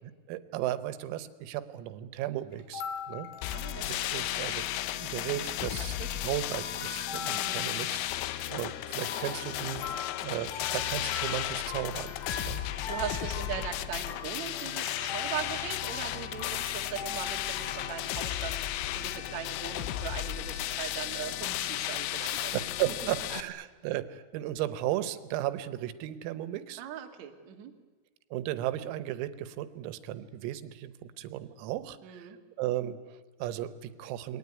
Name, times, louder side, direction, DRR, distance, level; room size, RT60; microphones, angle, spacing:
voice 1, 0.0-3.3 3.9-4.7 5.0-6.0 6.2-12.1 12.4-12.6 22.2-26.8 28.3-30.9 31.2-32.3 32.6-34.4, right 13 dB, 85° right, 13 dB, 3.7 m, -35 dB
sound 1, 2.5-4.2 4.5-4.6 4.8-5.0 5.5-6.3 6.5-18.0, left 5 dB, 65° left, 4.9 m, -43 dB
sound 2, 3.4-23.4, left 14 dB, 85° left, 3.7 m, -34 dB
voice 2, 3.5-3.9 6.0-6.2 7.2-7.6 12.8-22.5 22.9-23.0 26.8-27.7 32.0-32.4, right 10 dB, 55° right, 3 dB, 2.1 m, -40 dB
28.0 x 21.0 x 9.7 m, 1.3 s
omnidirectional pair, 6.0 m